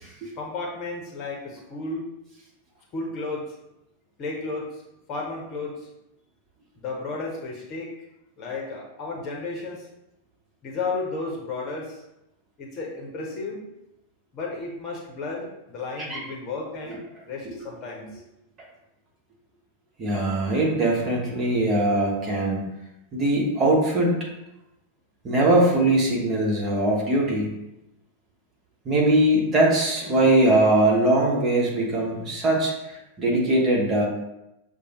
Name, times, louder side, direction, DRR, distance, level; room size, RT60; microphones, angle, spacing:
voice 1, 0.4-2.1 2.9-3.5 4.2-4.8 5.1-5.9 6.8-7.9 8.4-9.9 10.6-12.0 12.6-13.6 14.3-17.0 17.3-18.2, left 3 dB, 35° left, -1 dB, 1.0 m, -33 dB
voice 2, 20.0-22.6 23.1-24.1 25.2-27.5 28.8-32.7 33.2-34.1, right 1 dB, 30° right, -3 dB, 1.3 m, -21 dB
6.8 x 2.3 x 3.0 m, 0.91 s
figure-of-eight pair, 90°, 0 cm